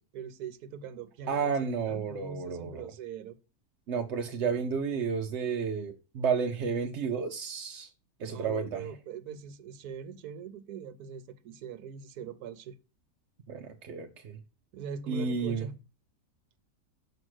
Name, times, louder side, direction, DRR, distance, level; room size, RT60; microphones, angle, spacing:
voice 1, 0.0-1.6 1.9-3.4 8.2-12.8 14.7-15.7, right 6 dB, 75° right, 1.2 m, -42 dB
voice 2, 1.3-2.9 3.9-7.9 8.2-8.8 13.5-14.4 15.1-15.7, right 6 dB, 60° right, 0.8 m, -31 dB
6.3 x 4.9 x 6.2 m
omnidirectional pair, 1.7 m